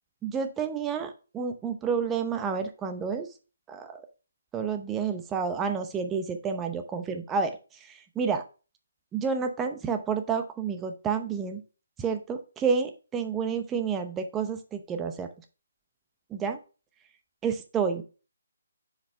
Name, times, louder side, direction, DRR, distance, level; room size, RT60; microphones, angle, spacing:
voice 1, 0.2-3.3 3.7-4.0 4.5-7.6 8.2-8.4 9.1-11.6 12.0-15.3 16.3-16.6 17.4-18.0, right 6 dB, 10° right, 6 dB, 0.8 m, -29 dB
7.1 x 4.9 x 3.4 m, 0.33 s
hypercardioid pair, 155°, 0 cm